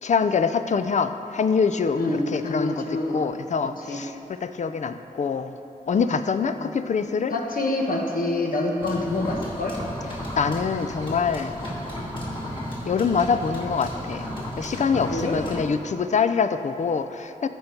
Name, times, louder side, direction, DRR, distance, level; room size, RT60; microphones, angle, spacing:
voice 1, 0.0-2.0 2.3-5.6 5.9-7.3 10.3-11.7 12.8-14.3 14.6-17.5, left 5 dB, 55° left, 10 dB, 0.4 m, -25 dB
voice 2, 1.9-3.2 3.9-4.0 6.6-6.7 7.3-9.7 15.0-15.4, left 2 dB, 70° left, 0 dB, 1.3 m, -26 dB
sound 1, 8.8-15.7, equal, 35° left, 2.1 m, -34 dB
14.5 x 5.4 x 4.5 m, 2.9 s
wide cardioid pair, 85°, 15 cm